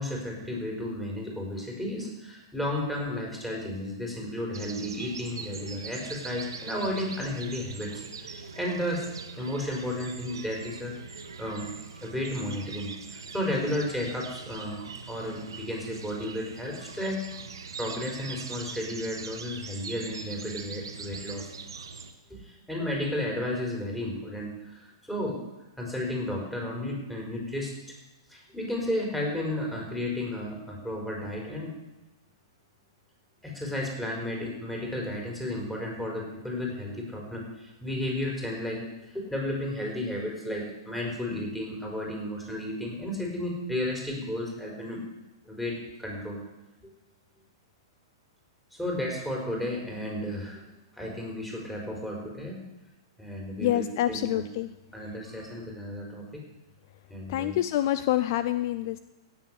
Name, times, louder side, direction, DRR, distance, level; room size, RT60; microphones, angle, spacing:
voice 1, 0.0-7.9 8.2-9.0 9.3-11.7 12.0-17.2 17.8-21.5 22.3-25.4 25.8-27.7 28.3-31.8 33.4-45.0 45.4-46.4 46.8-46.9 48.8-50.6 51.0-52.6 53.2-54.4 54.9-56.4 57.1-57.6, left 1 dB, 5° left, -2 dB, 4.8 m, -33 dB
sound 1, 4.5-22.1, right 5 dB, 70° right, 1.5 m, -42 dB
voice 2, 53.6-54.7 57.3-59.0, left 13 dB, 50° left, 13 dB, 0.5 m, -27 dB
16.5 x 7.0 x 8.3 m, 0.98 s
figure-of-eight pair, 110°, 2 cm